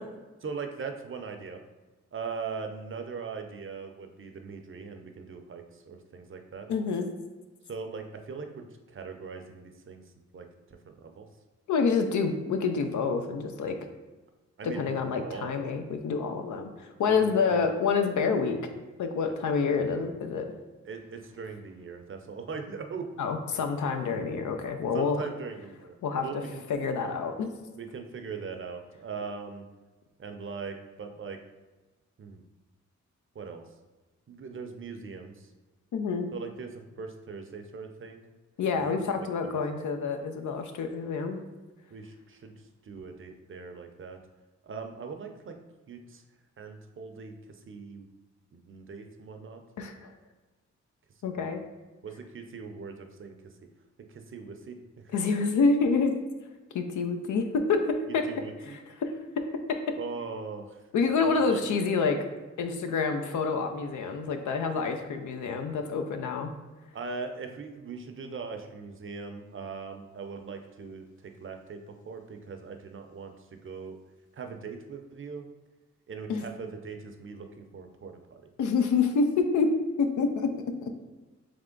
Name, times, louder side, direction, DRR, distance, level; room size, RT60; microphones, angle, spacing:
voice 1, 0.4-1.6 2.1-6.7 7.6-10.0 10.3-10.4 10.9-11.3 14.6-15.6 17.1-17.6 20.8-23.1 24.9-25.9 26.2-26.6 27.8-29.7 30.2-31.4 32.2-32.4 33.3-33.6 34.3-35.5 36.3-38.2 38.8-39.6 41.9-42.5 42.8-44.2 44.6-45.5 45.9-46.2 46.6-48.1 48.5-49.6 51.3-51.6 52.0-53.3 54.1-55.1 58.3-58.8 60.0-60.8 61.2-61.6 66.9-74.0 74.3-75.5 76.1-78.4, right 5 dB, 45° right, 5 dB, 0.6 m, -40 dB
voice 2, 6.7-7.1 11.7-13.8 14.6-18.6 19.0-20.5 23.2-25.2 26.0-26.2 26.7-27.5 35.9-36.3 38.6-41.4 49.8-50.1 51.2-51.6 55.1-56.1 56.7-57.8 58.1-58.2 58.7-59.1 60.9-62.2 62.6-66.5 76.3-76.4 78.6-79.7 80.0-80.5 80.8-80.9, left 5 dB, 75° left, 6 dB, 0.6 m, -27 dB
3.5 x 3.2 x 3.7 m, 1.2 s
cardioid pair, 60°, 30 cm